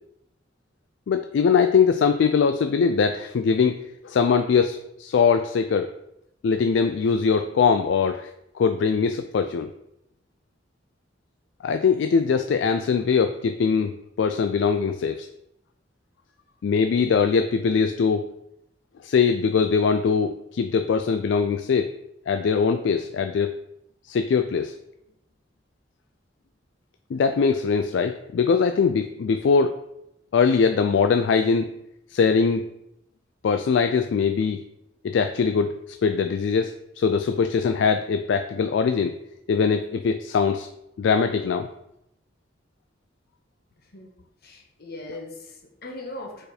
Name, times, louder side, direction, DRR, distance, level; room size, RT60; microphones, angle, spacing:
voice 1, 1.1-3.8 4.0-5.9 6.4-8.3 8.6-9.7 11.6-15.3 16.6-18.2 19.0-21.9 22.3-23.5 24.1-24.7 27.1-29.8 30.3-31.7 32.1-32.7 33.4-34.6 35.0-35.8 36.0-39.1 39.5-40.7 41.0-41.7, left 5 dB, 75° left, 7 dB, 0.3 m, -22 dB
voice 2, 44.4-46.4, left 2 dB, 60° left, 1 dB, 1.3 m, -39 dB
5.0 x 4.4 x 4.3 m, 0.83 s
head